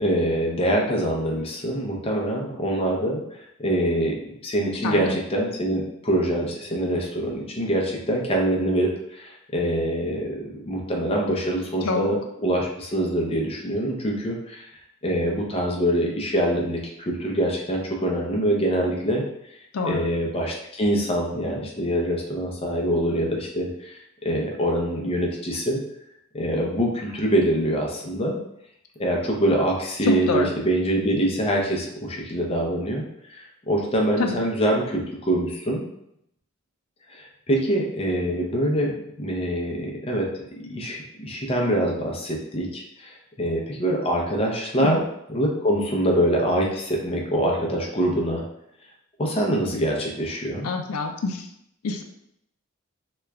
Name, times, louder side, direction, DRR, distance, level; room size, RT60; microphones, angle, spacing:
voice 1, 0.0-14.6 15.0-19.2 19.8-25.8 26.3-28.4 29.0-35.8 37.1-40.3 40.6-45.0 45.3-48.4 49.2-50.7, right 1 dB, 25° left, -1 dB, 0.5 m, -25 dB
voice 2, 4.8-5.2 11.8-12.1 19.7-20.0 30.1-30.5 34.2-34.4 44.8-45.0 50.6-51.4 51.8-52.0, left 3 dB, 85° left, 4 dB, 0.4 m, -26 dB
3.0 x 2.3 x 3.3 m, 0.77 s
head